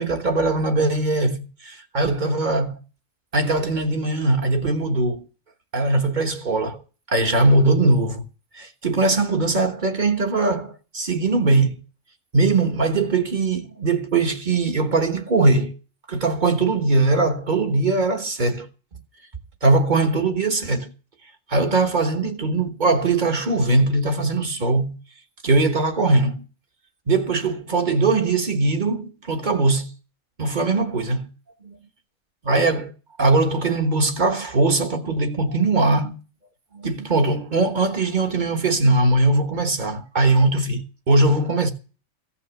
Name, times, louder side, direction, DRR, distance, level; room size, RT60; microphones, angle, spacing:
voice 1, 0.0-2.8 3.3-5.3 5.7-6.8 7.1-8.2 8.5-11.8 12.3-15.7 16.1-18.7 19.6-20.9 21.5-24.9 25.4-26.4 27.1-29.9 30.4-31.3 31.6-31.8 32.4-32.9 33.2-36.2 36.7-41.7, right 2 dB, 35° right, 1.4 m, -20 dB
15.5 x 6.0 x 8.0 m
omnidirectional pair, 1.5 m